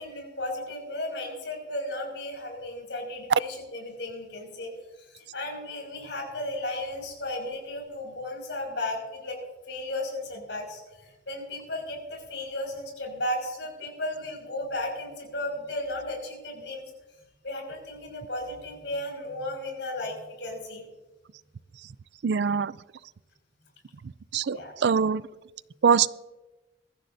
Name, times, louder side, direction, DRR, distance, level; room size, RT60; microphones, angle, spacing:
voice 1, 0.0-4.7 5.0-9.4 9.7-16.8 17.4-20.8 24.5-24.7, left 1 dB, 75° left, 1 dB, 6.2 m, -35 dB
voice 2, 22.2-22.7 24.3-25.2 25.8-26.1, right 6 dB, 65° right, 18 dB, 0.4 m, -23 dB
23.0 x 14.5 x 2.7 m, 1.1 s
head